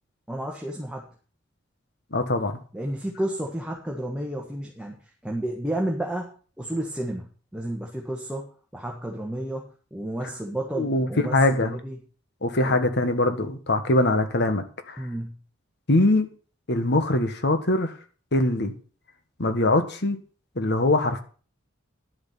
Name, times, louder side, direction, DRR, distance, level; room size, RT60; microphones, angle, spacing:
voice 1, 0.3-1.1 2.7-5.0 5.2-12.0 12.6-12.8 15.0-15.4, right 1 dB, 5° right, 0 dB, 1.5 m, -32 dB
voice 2, 2.1-2.6 10.7-11.8 12.4-15.1 15.9-16.3 16.7-17.9 18.3-18.7 19.4-20.2 20.5-21.2, left 2 dB, 60° left, 8 dB, 1.6 m, -22 dB
11.0 x 7.4 x 5.8 m, 0.40 s
head